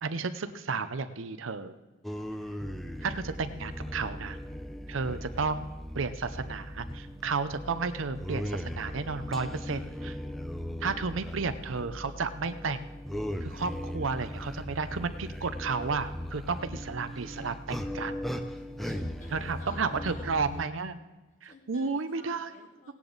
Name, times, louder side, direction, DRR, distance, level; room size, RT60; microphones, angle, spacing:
voice 1, 0.0-1.7 3.0-4.4 4.9-5.7 5.9-9.8 10.0-10.1 10.8-12.8 13.4-18.2 19.3-21.0 21.4-22.5 22.9-23.0, right 4 dB, 75° right, 11 dB, 0.7 m, -32 dB
sound 1, 2.0-20.6, equal, ahead, 0.7 m, -38 dB
voice 2, 9.0-10.1 16.7-17.6 18.5-20.3 21.4-22.9, left 1 dB, 40° left, 1 dB, 2.3 m, -52 dB
17.5 x 10.5 x 4.0 m, 1.2 s
head